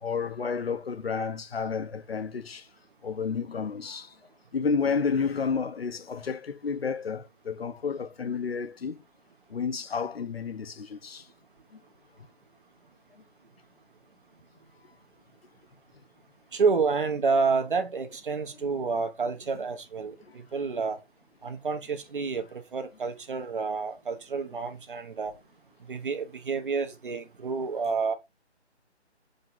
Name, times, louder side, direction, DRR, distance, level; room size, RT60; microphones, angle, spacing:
voice 1, 0.0-2.6 3.0-4.1 4.5-9.0 9.5-11.2, left 5 dB, 60° left, 1.0 m, -31 dB
voice 2, 16.5-21.0 21.4-25.3 25.9-28.1, right 4 dB, 50° right, 1.3 m, -29 dB
5.9 x 5.3 x 3.9 m
figure-of-eight pair, 155°, 34 cm